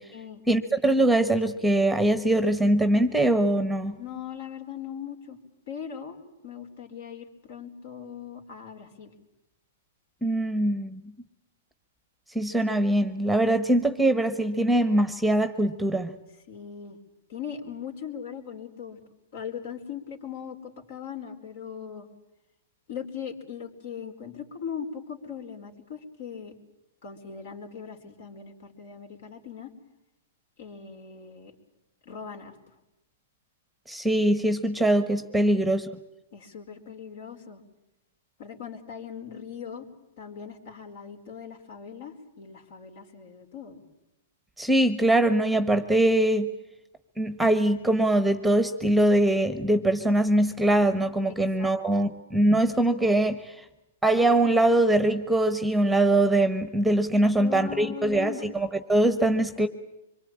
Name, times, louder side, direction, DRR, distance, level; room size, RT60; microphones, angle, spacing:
voice 1, 0.5-3.9 10.2-11.0 12.3-16.1 33.9-35.9 44.6-46.5 47.2-53.6 54.0-59.7, right 1 dB, ahead, 12 dB, 1.2 m, -22 dB
voice 2, 4.0-5.4 5.7-9.1 16.5-17.0 17.3-19.0 19.3-22.1 22.9-26.5 27.0-29.7 30.6-31.5 32.0-32.6 35.4-35.5 36.3-37.6 38.4-39.9 40.2-43.8 51.3-52.1 57.2-58.5, left 7 dB, 60° left, 6 dB, 4.4 m, -39 dB
25.5 x 23.0 x 8.8 m, 0.93 s
hypercardioid pair, 140°, 0 cm